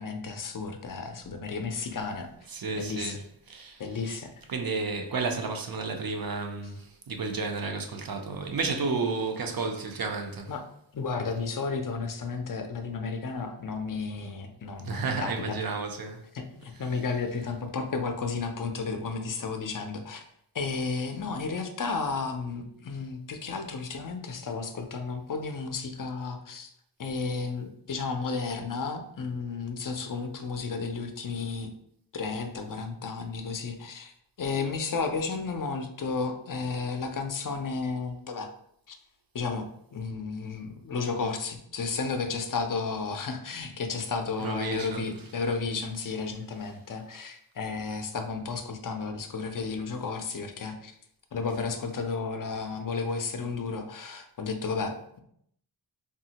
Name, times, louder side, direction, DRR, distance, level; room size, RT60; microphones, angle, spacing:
voice 1, 0.0-2.3 2.8-3.2 3.8-4.3 10.5-10.6 10.9-15.6 16.3-20.2 20.5-26.7 27.0-31.7 32.1-34.1 34.4-38.5 38.9-39.0 39.3-50.9 51.3-55.2, left 4 dB, 45° left, 0.5 m, -33 dB
voice 2, 2.5-3.8 4.5-10.5 14.9-16.2 44.4-45.0, right 4 dB, 50° right, 0.5 m, -32 dB
3.7 x 2.0 x 2.8 m
wide cardioid pair, 60°, 48 cm